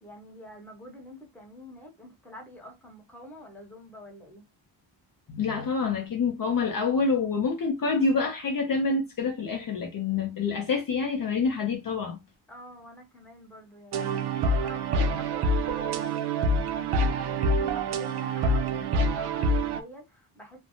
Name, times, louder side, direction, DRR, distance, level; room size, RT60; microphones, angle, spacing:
voice 1, 0.0-4.5 12.5-20.6, equal, 5° left, 0.8 m, -47 dB
voice 2, 5.3-12.2, left 4 dB, 45° left, 0.5 m, -27 dB
sound 1, 13.9-19.8, right 1 dB, 60° right, 0.5 m, -26 dB
3.2 x 2.0 x 2.6 m
wide cardioid pair, 180°, 47 cm